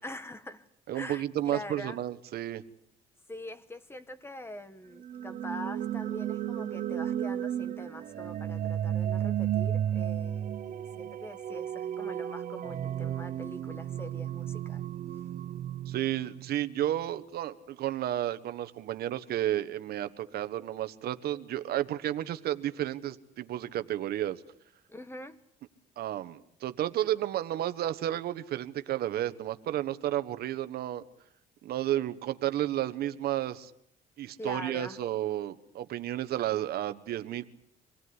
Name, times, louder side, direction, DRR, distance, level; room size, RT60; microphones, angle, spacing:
voice 1, 0.0-0.7 0.9-2.0 3.3-14.9 24.9-25.4 34.4-35.0, left 1 dB, 15° left, 12 dB, 1.6 m, -43 dB
voice 2, 0.9-2.6 15.9-24.4 26.0-31.0 31.6-33.7 34.2-37.4, right 12 dB, 65° right, 11 dB, 1.3 m, -32 dB
sound 1, 5.0-16.9, right 10 dB, 50° right, 0.9 m, -33 dB
26.0 x 18.5 x 9.7 m, 0.71 s
cardioid pair, 110°, 17 cm